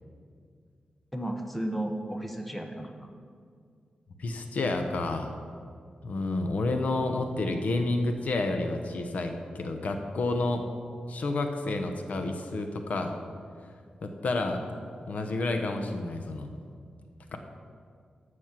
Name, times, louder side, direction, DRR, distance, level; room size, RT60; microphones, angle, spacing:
voice 1, 1.1-3.1, right 1 dB, 5° left, 3 dB, 0.9 m, -34 dB
voice 2, 4.2-5.3 6.0-10.6 11.1-13.2 14.0-14.6 15.1-16.6 17.3-17.4, left 2 dB, 65° left, 5 dB, 1.0 m, -30 dB
12.5 x 6.4 x 6.0 m, 2.2 s
wide cardioid pair, 130°, 3 cm